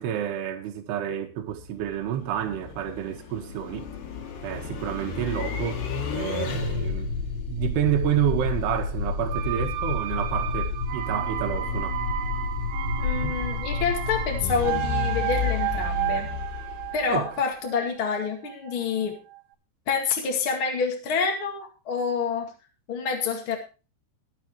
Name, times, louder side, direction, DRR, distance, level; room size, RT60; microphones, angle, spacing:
voice 1, 0.0-3.9 4.4-5.9 6.1-12.0 13.2-13.4 17.1-17.3, right 11 dB, 65° right, 3.5 m, -29 dB
sound 1, 1.4-17.4, left 5 dB, 60° left, 3.8 m, -31 dB
sound 2, 9.3-19.0 19.3-19.4, right 14 dB, 85° right, 4.1 m, -32 dB
voice 2, 13.0-16.3 16.9-19.2 19.9-22.5 22.9-23.6, left 5 dB, 45° left, 1.8 m, -27 dB
23.0 x 8.1 x 3.2 m
omnidirectional pair, 5.6 m